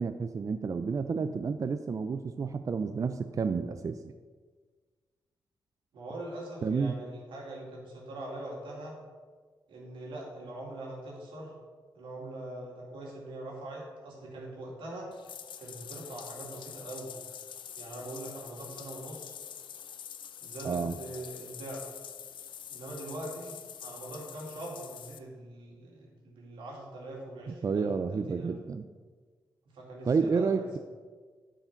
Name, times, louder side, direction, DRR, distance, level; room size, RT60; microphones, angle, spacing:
voice 1, 0.0-4.1 6.6-7.0 20.6-21.0 27.5-28.8 30.0-30.8, right 5 dB, 45° right, 9 dB, 0.4 m, -30 dB
voice 2, 5.9-9.0 9.7-11.5 11.9-15.1 15.6-17.1 17.8-19.4 20.4-22.0 22.7-27.9 28.3-28.6 29.7-30.8, right 1 dB, 90° right, -2 dB, 2.2 m, -42 dB
Bathtub (filling or washing), 15.1-25.2, left 9 dB, 75° left, 0.5 m, -45 dB
8.8 x 4.9 x 5.8 m, 1.5 s
cardioid pair, 70°, 8 cm